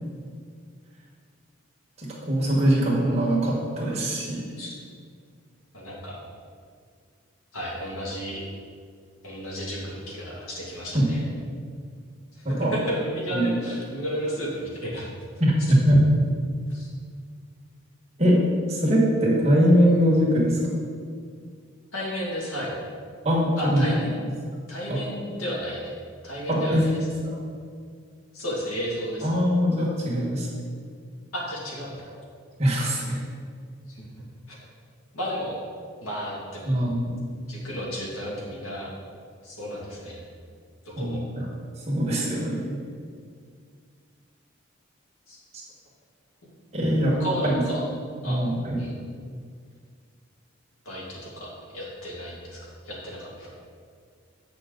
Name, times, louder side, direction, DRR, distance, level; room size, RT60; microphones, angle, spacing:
voice 1, 2.0-4.6 10.9-11.1 12.4-12.7 13.3-13.5 15.4-16.0 18.2-18.4 18.7-20.6 23.2-23.9 24.9-25.0 26.5-26.8 27.3-27.4 29.2-30.5 32.6-33.2 36.6-37.1 41.0-41.4 41.8-42.8 46.7-47.1 47.4-47.6 48.2-48.8, equal, 30° right, -4 dB, 1.5 m, -22 dB
voice 2, 5.7-6.2 7.5-8.4 9.2-11.2 12.3-15.1 16.7-16.9 21.9-22.7 23.6-24.1 24.7-25.9 26.2-27.0 28.3-29.3 31.3-32.1 33.9-34.0 34.5-34.6 35.1-35.6 36.0-36.8 37.5-38.9 39.4-40.2 40.8-41.2 45.3-45.4 47.2-47.9 48.2-48.4 48.8-48.9 50.8-52.6 52.8-53.5, equal, 85° left, -5 dB, 2.2 m, -33 dB
8.0 x 6.2 x 3.9 m, 2.1 s
head